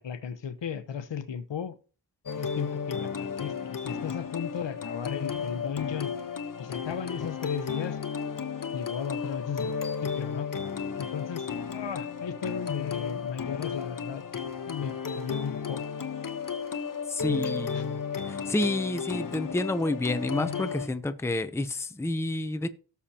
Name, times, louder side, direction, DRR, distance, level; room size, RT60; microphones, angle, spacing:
voice 1, 0.0-1.8 2.4-6.1 6.6-8.0 8.7-9.7 10.0-10.5 11.0-14.2 14.7-16.1 17.3-17.9, left 7 dB, 75° left, 1.0 m, -35 dB
sound 1, 2.3-20.9, left 6 dB, 50° left, 1.0 m, -34 dB
voice 2, 17.1-18.0 18.3-22.7, left 2 dB, 5° left, 0.6 m, -29 dB
17.5 x 7.0 x 2.9 m
wide cardioid pair, 140°, 44 cm